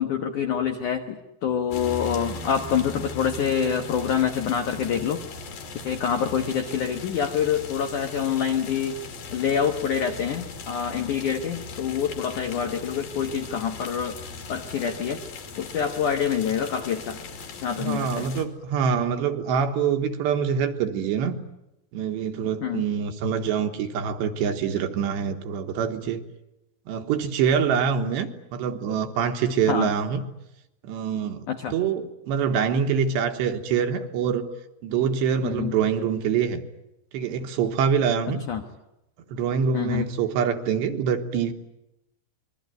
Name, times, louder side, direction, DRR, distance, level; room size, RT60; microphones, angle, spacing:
voice 1, 0.0-5.2 5.8-9.0 9.3-14.2 14.5-15.2 15.6-17.2 17.6-18.3 22.6-22.8 29.7-29.9 31.5-31.7 35.4-35.8 38.5-38.6 39.7-40.1, left 8 dB, 75° left, 5 dB, 1.8 m, -26 dB
sound 1, 1.7-18.5, left 3 dB, 50° left, 4.0 m, -39 dB
voice 2, 17.8-21.4 21.9-26.2 26.9-30.2 30.8-34.5 34.8-36.6 37.1-38.4 39.3-41.5, right 7 dB, 70° right, 6 dB, 3.3 m, -25 dB
27.0 x 22.0 x 9.4 m, 0.90 s
omnidirectional pair, 5.8 m